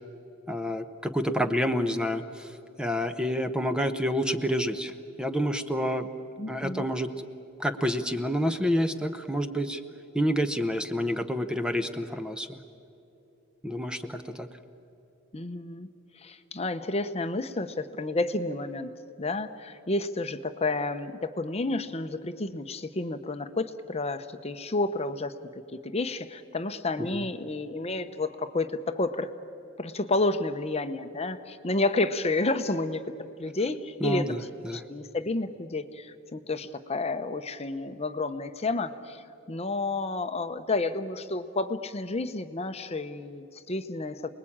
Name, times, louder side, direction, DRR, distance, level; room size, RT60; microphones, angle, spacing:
voice 1, 0.5-2.5 2.8-4.9 5.2-6.1 6.5-7.3 7.6-9.8 10.1-12.6 13.6-14.5 27.0-27.2 34.0-34.8, equal, 5° right, 8 dB, 0.8 m, -28 dB
voice 2, 6.4-6.8 15.3-15.9 16.2-18.9 19.2-25.3 25.7-29.3 29.8-33.1 33.4-44.3, left 2 dB, 30° left, 10 dB, 0.9 m, -30 dB
28.5 x 20.5 x 8.7 m, 2.9 s
head